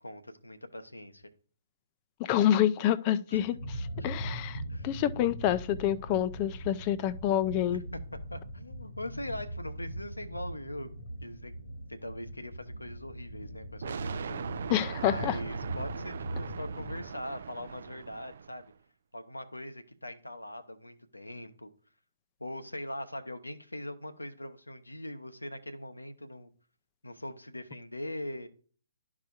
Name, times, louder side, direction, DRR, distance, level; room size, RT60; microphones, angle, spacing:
voice 1, 0.0-1.3 3.3-3.4 3.7-4.1 4.7-4.9 7.6-8.0 8.3-10.9 11.2-11.5 11.9-14.6 14.9-18.6 19.1-21.7 22.4-26.5 27.0-28.5, left 1 dB, 85° left, 0.9 m, -41 dB
voice 2, 2.2-3.6 4.0-7.8 14.7-15.4, left 11 dB, 30° left, 0.5 m, -27 dB
sound 1, 3.6-17.1, right 1 dB, 65° left, 1.4 m, -40 dB
sound 2, 13.8-18.7, right 7 dB, 55° right, 0.4 m, -40 dB
12.0 x 4.9 x 2.4 m
figure-of-eight pair, 125°, 0 cm